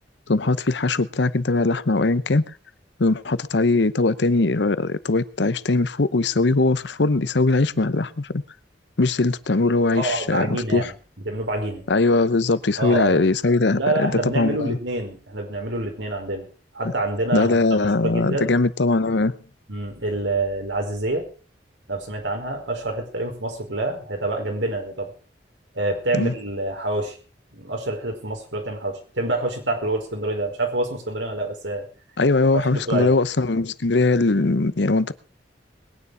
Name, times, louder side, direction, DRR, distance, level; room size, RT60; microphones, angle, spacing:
voice 1, 0.3-2.4 3.0-8.4 9.0-10.9 11.9-14.8 17.3-19.4 26.1-26.3 32.2-35.1, left 3 dB, 70° left, 0.8 m, -20 dB
voice 2, 9.9-10.9 11.2-11.8 12.8-13.3 13.7-16.4 16.7-17.6 18.0-18.6 19.7-21.3 21.9-25.1 25.7-27.2 27.5-31.9 32.6-33.2, right 2 dB, 85° right, 4.9 m, -27 dB
21.5 x 9.7 x 4.8 m
head